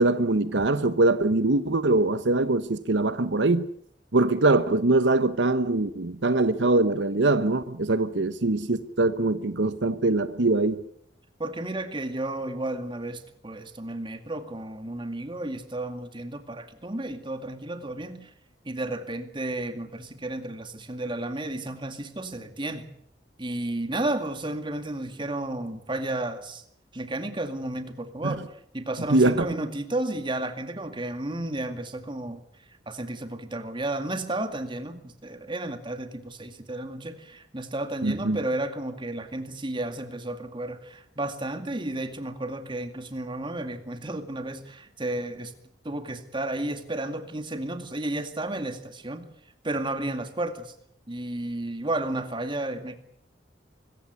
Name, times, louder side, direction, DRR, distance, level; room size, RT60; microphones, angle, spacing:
voice 1, 0.0-3.7 4.1-10.8 28.2-28.3 29.1-29.5 38.0-38.4, right 2 dB, 80° right, 1.1 m, -23 dB
voice 2, 11.4-18.3 18.7-22.9 23.4-26.6 26.9-32.4 32.9-45.5 45.8-49.3 49.6-50.7 51.1-52.9, right 1 dB, 25° right, 2.2 m, -32 dB
24.5 x 15.0 x 9.7 m
head